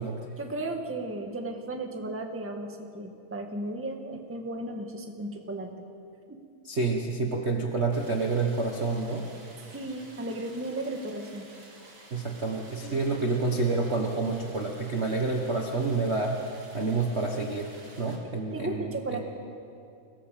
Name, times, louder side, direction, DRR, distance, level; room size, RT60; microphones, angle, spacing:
voice 1, 0.4-5.7 6.3-6.4 9.7-11.5 12.8-13.3 18.5-19.2, right 2 dB, 10° right, 3 dB, 0.7 m, -35 dB
voice 2, 6.6-9.3 12.1-16.3 16.7-17.7 18.0-19.2, right 3 dB, 65° right, 0 dB, 0.6 m, -28 dB
Stream, 7.9-18.2, right 2 dB, 40° right, 4.0 m, -52 dB
25.5 x 17.0 x 7.6 m, 2.5 s
omnidirectional pair, 3.5 m